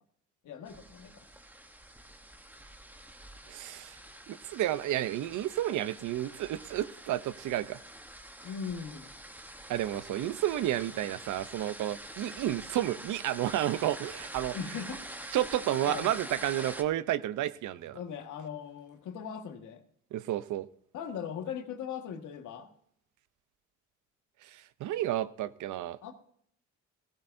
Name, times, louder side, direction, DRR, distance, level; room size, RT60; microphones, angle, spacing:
voice 1, 0.4-1.3 8.4-9.1 14.5-15.0 15.8-16.1 17.9-19.8 20.9-22.7 26.0-26.1, left 7 dB, 80° left, 5 dB, 1.6 m, -39 dB
sound 1, 0.7-16.8, right 1 dB, 5° right, 1.0 m, -46 dB
voice 2, 3.5-3.9 4.3-7.8 9.7-14.6 15.3-18.0 20.1-20.7 24.5-26.0, right 13 dB, 75° right, 15 dB, 0.7 m, -31 dB
16.0 x 16.0 x 2.6 m, 0.64 s
cardioid pair, 90°, 30 cm